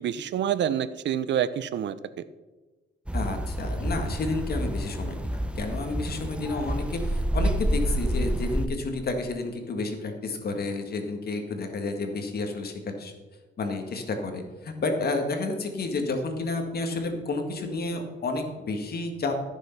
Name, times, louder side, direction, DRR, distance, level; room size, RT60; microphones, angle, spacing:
voice 1, 0.0-2.2, right 9 dB, 65° right, 15 dB, 0.7 m, -27 dB
voice 2, 3.1-13.1 13.6-19.4, left 3 dB, 50° left, 5 dB, 1.9 m, -31 dB
sound 1, 3.1-8.7, right 1 dB, 5° right, 0.9 m, -28 dB
14.0 x 6.5 x 5.8 m, 1.2 s
cardioid pair, 90°, 20 cm